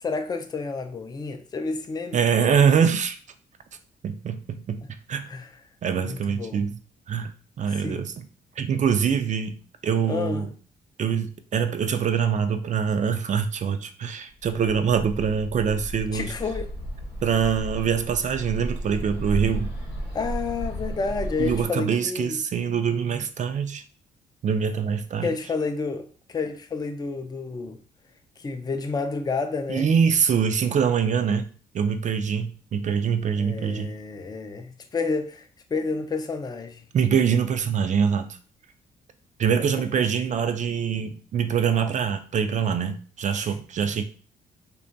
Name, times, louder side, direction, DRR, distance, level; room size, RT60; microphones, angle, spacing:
voice 1, 0.0-2.2 5.3-5.5 6.0-6.7 7.7-8.0 10.1-10.5 16.1-16.7 20.1-22.4 25.2-27.8 28.4-29.9 33.4-36.9 43.4-43.5, left 4 dB, 20° left, 0.4 m, -30 dB
voice 2, 2.1-3.2 4.0-4.8 5.1-5.3 5.8-6.8 7.1-7.3 7.6-8.1 8.6-9.6 9.8-10.5 11.0-16.3 17.2-19.7 21.4-23.8 24.4-25.3 29.7-31.5 31.7-33.9 36.9-38.3 39.4-44.0, right 7 dB, 45° right, 0.4 m, -24 dB
Bird, 14.4-21.7, right 1 dB, 90° left, 1.0 m, -33 dB
2.8 x 2.2 x 2.6 m
supercardioid pair, 60°, 18 cm